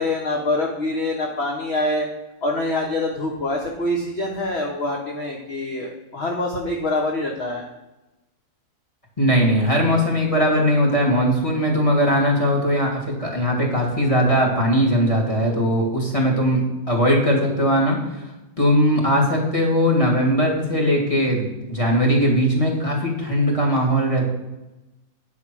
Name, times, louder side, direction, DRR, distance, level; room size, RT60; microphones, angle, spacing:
voice 1, 0.0-2.1 2.4-7.7, left 2 dB, 40° left, 1 dB, 1.0 m, -25 dB
voice 2, 9.2-16.6 16.9-18.3 18.6-24.2, equal, 15° left, 0 dB, 2.2 m, -19 dB
9.6 x 5.6 x 6.1 m, 1.0 s
omnidirectional pair, 2.1 m